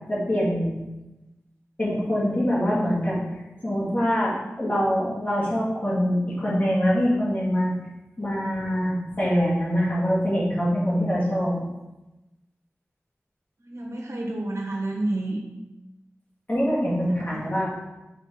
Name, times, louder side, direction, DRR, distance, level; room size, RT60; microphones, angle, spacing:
voice 1, 0.1-0.7 1.8-3.2 3.6-7.7 8.2-11.5 16.5-17.7, equal, 35° left, -7 dB, 2.3 m, -24 dB
voice 2, 13.6-15.4 17.1-17.4, right 2 dB, 70° right, -1 dB, 1.4 m, -29 dB
6.2 x 4.4 x 3.9 m, 1.0 s
wide cardioid pair, 75°, 5 cm